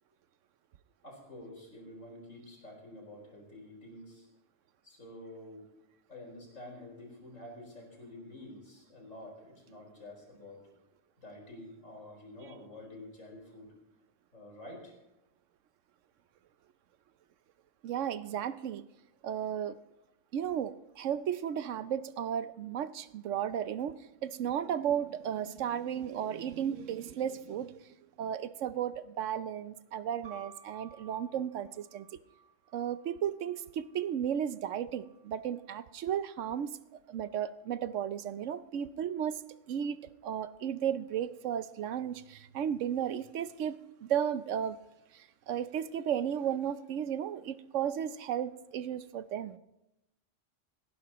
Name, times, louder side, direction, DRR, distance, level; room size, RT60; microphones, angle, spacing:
voice 1, 1.0-4.3 4.8-5.6 6.1-10.6 11.2-13.7 14.3-14.9, left 1 dB, 90° left, -1 dB, 5.0 m, -49 dB
voice 2, 17.8-18.8 19.2-19.8 20.3-27.8 28.2-32.1 32.7-36.8 37.1-39.4 39.7-44.8 45.1-49.6, right 9 dB, 75° right, 13 dB, 1.0 m, -34 dB
sound 1, 30.2-34.1 34.9-35.6, right 5 dB, 55° right, 4.4 m, -56 dB
29.5 x 11.0 x 3.0 m, 0.92 s
omnidirectional pair, 1.3 m